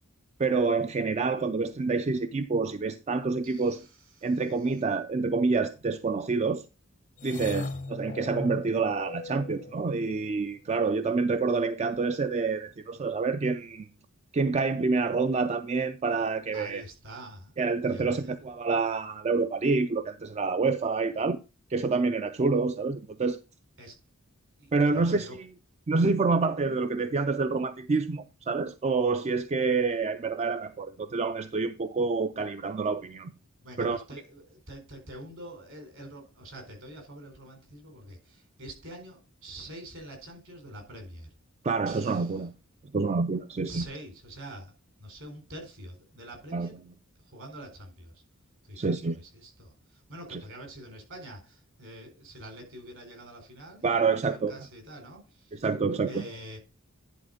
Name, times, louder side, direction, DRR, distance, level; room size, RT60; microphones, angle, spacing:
voice 1, 0.4-3.9 4.2-6.7 7.2-13.9 14.3-16.8 17.6-21.4 21.7-23.4 24.7-25.5 25.9-33.3 33.8-34.0 41.6-42.5 42.9-43.9 46.5-46.7 48.8-49.2 50.3-50.4 53.8-54.5 55.5-56.2, right 4 dB, 30° right, 0.4 m, -27 dB
voice 2, 3.4-3.8 4.2-4.3 7.4-7.8 16.5-17.6 17.9-18.3 23.8-24.0 24.6-25.4 33.6-41.3 41.9-42.4 43.7-44.7 45.0-46.7 47.2-48.2 48.7-55.7 56.1-56.6, right 1 dB, 60° right, 4.0 m, -45 dB
sound 1, 7.2-10.3, left 3 dB, 35° left, 0.5 m, -38 dB
10.5 x 4.3 x 5.1 m
head